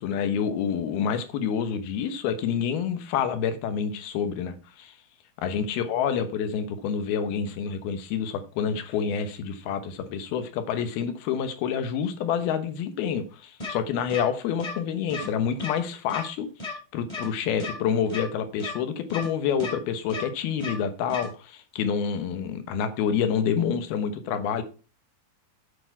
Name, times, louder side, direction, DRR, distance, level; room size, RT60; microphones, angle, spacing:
voice 1, 0.0-4.9 5.4-24.6, left 7 dB, 85° left, 3.1 m, -28 dB
sound 1, 13.6-13.7 14.1-14.2 14.6-14.7 15.1-15.3 15.6-15.7 16.1-16.2 16.6-16.7 17.1-17.3 17.6-17.7 18.1-18.2 18.6-18.7 19.1-19.3 19.6-19.7 20.1-20.2 20.6-20.7 21.1-21.3, left 3 dB, 10° left, 2.8 m, -33 dB
8.8 x 8.4 x 4.5 m
omnidirectional pair, 4.3 m